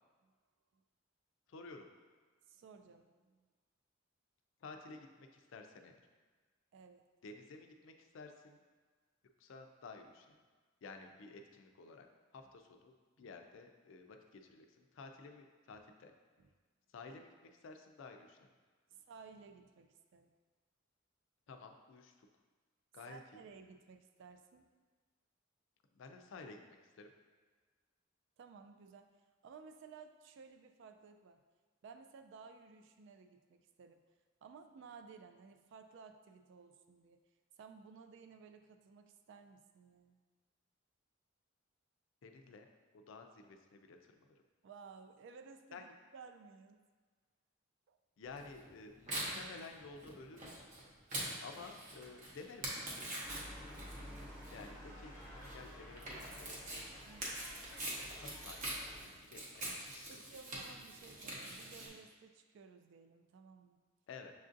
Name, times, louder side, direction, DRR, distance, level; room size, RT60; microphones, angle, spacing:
voice 1, 1.5-1.9 4.6-6.0 7.2-8.6 9.4-10.4 10.8-12.1 12.3-16.1 16.9-18.5 21.5-22.3 22.9-23.4 25.9-26.6 27.0-27.1 42.2-42.7 42.9-44.4 45.7-45.8 48.2-50.7 51.4-52.7 54.5-56.6 57.5-60.2 64.1-64.3, left 4 dB, 70° left, 5 dB, 0.4 m, -53 dB
voice 2, 2.5-3.5 6.7-7.0 13.2-13.3 15.7-15.8 16.4-16.5 18.9-20.3 23.1-24.7 28.4-29.1 29.4-31.4 31.8-34.0 34.4-37.2 37.6-40.2 44.6-45.9 46.1-46.8 47.9-48.0 57.0-57.5 60.1-63.8, right 5 dB, 65° right, 7 dB, 0.3 m, -56 dB
Tearing, 48.3-61.9, right 1 dB, 40° right, 0.8 m, -44 dB
sound 1, 53.2-59.0, equal, 10° right, 1.0 m, -52 dB
6.4 x 2.5 x 2.5 m, 1.4 s
head